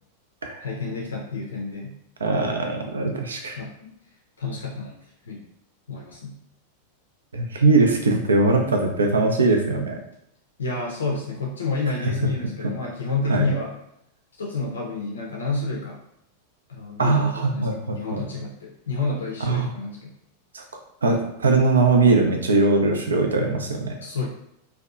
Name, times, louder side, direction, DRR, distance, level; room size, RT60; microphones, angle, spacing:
voice 1, 0.6-2.0 3.6-3.9 4.4-4.9 5.3-5.4 5.9-6.4 10.6-13.7 14.4-16.0 16.7-20.1 24.0-24.3, left 3 dB, 70° left, -2 dB, 0.4 m, -29 dB
voice 2, 2.2-3.6 7.3-10.0 13.3-13.5 17.0-18.2 19.4-19.7 20.5-20.6 21.0-23.9, right 3 dB, 70° right, 3 dB, 0.4 m, -21 dB
2.6 x 2.2 x 2.3 m, 0.78 s
figure-of-eight pair, 90°, 0 cm